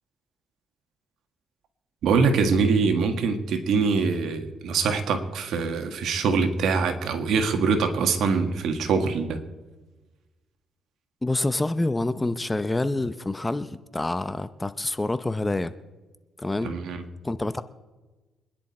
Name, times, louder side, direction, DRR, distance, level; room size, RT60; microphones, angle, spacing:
voice 1, 2.0-9.4 16.6-17.1, right 5 dB, 75° right, 6 dB, 1.8 m, -24 dB
voice 2, 11.2-15.7 16.4-16.7 17.2-17.6, left 2 dB, 15° left, 12 dB, 0.8 m, -27 dB
25.5 x 10.5 x 4.3 m, 1.2 s
cardioid pair, 90°, 0 cm